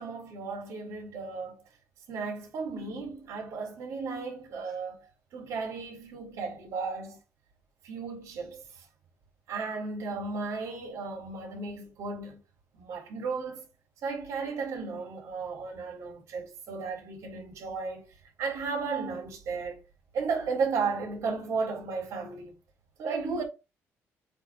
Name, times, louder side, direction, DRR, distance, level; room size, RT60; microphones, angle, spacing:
voice 1, 0.0-1.6 2.1-7.2 7.8-8.9 9.5-12.4 12.7-13.6 14.0-19.8 20.1-22.5 23.0-23.4, right 4 dB, 60° right, 3.6 m, -34 dB
8.1 x 3.5 x 4.8 m
cardioid pair, 130°, 6 cm